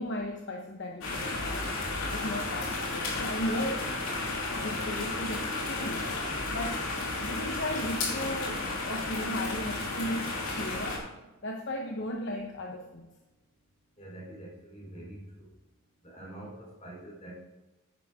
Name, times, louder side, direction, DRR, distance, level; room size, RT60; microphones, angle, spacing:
voice 1, 0.0-1.6 2.0-4.1 4.5-6.1 6.5-6.8 7.2-11.1 11.4-13.1, left 1 dB, 55° left, 2 dB, 0.9 m, -36 dB
sound 1, 1.0-11.0, left 2 dB, 75° left, 2.9 m, -33 dB
voice 2, 14.0-15.5 16.0-17.4, right 1 dB, 30° left, -3 dB, 3.8 m, -45 dB
10.0 x 10.0 x 3.6 m, 1.1 s
head